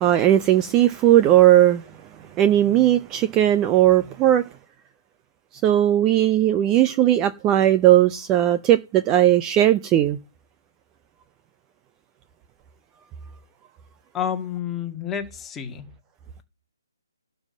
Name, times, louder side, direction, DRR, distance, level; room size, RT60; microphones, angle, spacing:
voice 1, 0.0-1.8 2.4-4.4 5.6-10.2, right 12 dB, 20° right, 0.6 m, -17 dB
voice 2, 14.1-15.8, left 8 dB, 10° left, 1.9 m, -29 dB
12.0 x 5.6 x 7.6 m
figure-of-eight pair, 145°, 2 cm